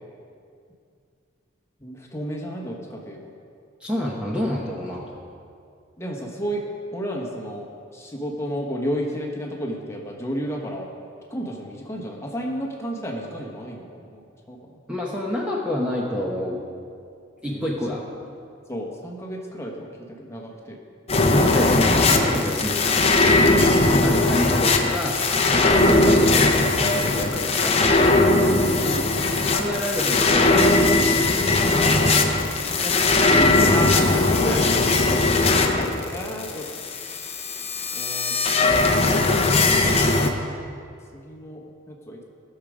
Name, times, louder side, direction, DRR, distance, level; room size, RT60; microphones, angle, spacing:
voice 1, 1.8-3.2 6.0-6.6 6.9-7.7 7.9-10.9 11.3-14.7 17.4-17.7 18.7-20.8 23.8-24.1 28.8-29.2 32.6-32.9 33.3-36.8 37.9-38.3 38.6-39.3 41.1-42.2, equal, 15° left, -1 dB, 1.2 m, -32 dB
voice 2, 3.8-5.0 14.9-16.6 17.4-18.0 21.3-23.2 23.8-28.3 29.5-31.6, left 1 dB, 5° right, -4 dB, 1.0 m, -28 dB
sound 1, 21.1-40.3, left 2 dB, 30° left, 0.8 m, -19 dB
17.0 x 6.7 x 5.0 m, 2.4 s
head